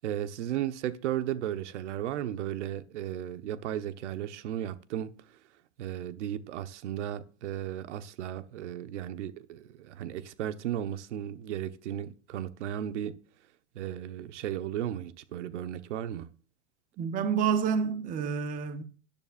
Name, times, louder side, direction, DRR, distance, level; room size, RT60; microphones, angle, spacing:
voice 1, 0.0-5.1 5.8-13.1 13.7-16.3, right 11 dB, 75° right, 1.2 m, -35 dB
voice 2, 17.0-18.8, right 7 dB, 20° right, 0.8 m, -28 dB
13.0 x 10.5 x 2.5 m
supercardioid pair, 145°, 36 cm